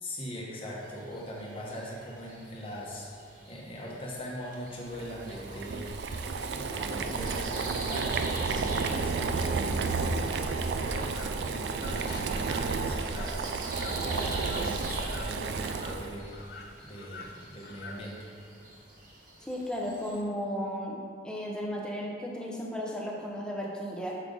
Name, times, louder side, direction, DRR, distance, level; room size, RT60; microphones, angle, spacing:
voice 1, 0.0-6.0 6.5-10.2 10.8-13.5 13.8-16.4 16.8-18.2, equal, 30° left, -4 dB, 1.0 m, -40 dB
sound 1, 0.6-20.2, right 2 dB, 45° right, 1.2 m, -47 dB
sound 2, 4.7-18.1, left 3 dB, 55° left, 0.6 m, -49 dB
Boiling, 4.9-16.2, right 4 dB, 65° right, 0.3 m, -31 dB
voice 2, 9.4-9.9 19.4-24.2, equal, 5° left, -2 dB, 0.7 m, -35 dB
6.6 x 5.0 x 3.8 m, 2.3 s
head